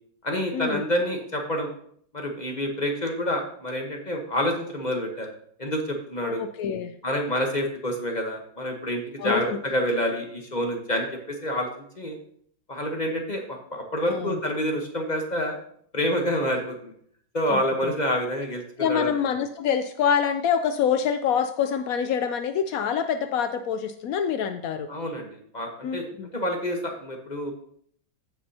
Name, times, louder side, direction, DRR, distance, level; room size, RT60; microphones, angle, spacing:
voice 1, 0.2-1.7 2.1-5.3 5.6-6.4 7.0-11.7 12.0-12.2 12.7-15.5 15.9-16.9 17.3-19.1 24.9-26.0 26.3-27.5, equal, 30° left, 2 dB, 0.9 m, -28 dB
voice 2, 6.2-6.9 9.2-9.6 14.1-14.4 17.5-17.9 18.8-24.9 25.8-26.3, left 7 dB, 85° left, 9 dB, 0.7 m, -26 dB
16.0 x 6.0 x 2.8 m, 0.62 s
omnidirectional pair, 2.1 m